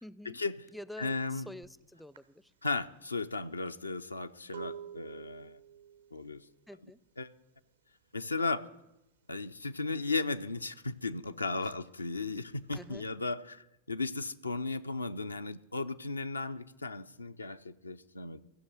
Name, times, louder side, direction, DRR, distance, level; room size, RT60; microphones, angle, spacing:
voice 1, 0.0-0.4 0.7-2.5 6.7-7.0 11.6-11.7 12.7-13.1, left 1 dB, 5° left, 18 dB, 0.4 m, -48 dB
voice 2, 1.0-1.5 2.6-5.6 6.1-6.4 7.2-7.3 8.1-8.6 9.3-18.4, left 3 dB, 80° left, 9 dB, 0.4 m, -35 dB
sound 1, 1.6-1.8 2.1-7.8 8.1-8.6 8.9-10.0 10.4-13.0, right 9 dB, 70° right, 0.6 m, -50 dB
14.5 x 6.4 x 9.0 m, 0.92 s
figure-of-eight pair, 90°, 0 cm